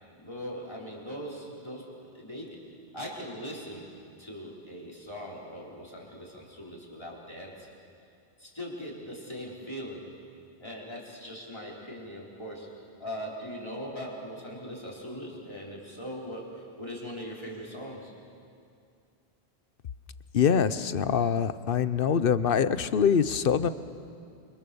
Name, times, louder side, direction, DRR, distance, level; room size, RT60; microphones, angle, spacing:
voice 1, 0.1-7.7 8.4-10.3 10.6-18.1, equal, 25° left, -4 dB, 4.6 m, -40 dB
voice 2, 20.3-23.7, left 7 dB, 60° left, 13 dB, 0.9 m, -24 dB
29.0 x 24.0 x 7.1 m, 2.4 s
omnidirectional pair, 1.1 m